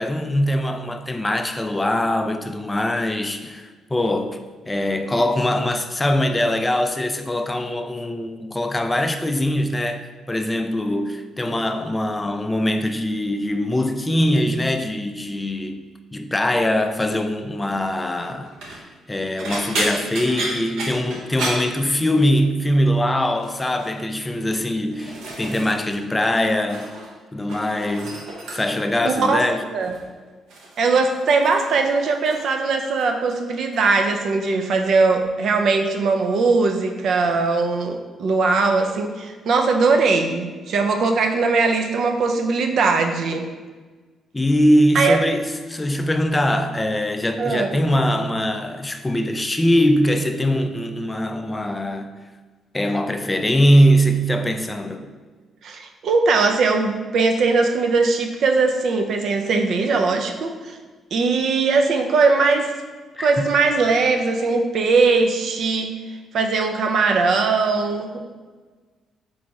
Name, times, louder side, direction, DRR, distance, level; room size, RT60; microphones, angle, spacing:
voice 1, 0.0-4.4 4.7-10.0 10.3-15.9 16.1-26.9 27.3-28.3 28.5-29.7 44.3-52.1 52.7-55.1 63.2-63.5, equal, 15° left, 0.3 m, -22 dB
sound 1, 18.4-18.8 19.4-22.4 22.7-23.0 23.4-23.9 24.6-26.0 26.3-27.1 27.4-28.9 29.8-30.1 30.5-32.6 32.8-33.4 33.7-33.9 35.2-35.3, right 2 dB, 80° right, 0.8 m, -32 dB
voice 2, 29.0-29.4 29.7-30.0 30.8-43.5 44.9-45.2 47.4-47.8 55.6-60.8 61.1-62.7 63.2-65.9 66.3-68.2, right 4 dB, 65° right, 0.4 m, -20 dB
3.9 x 3.1 x 3.5 m
cardioid pair, 90°, 0 cm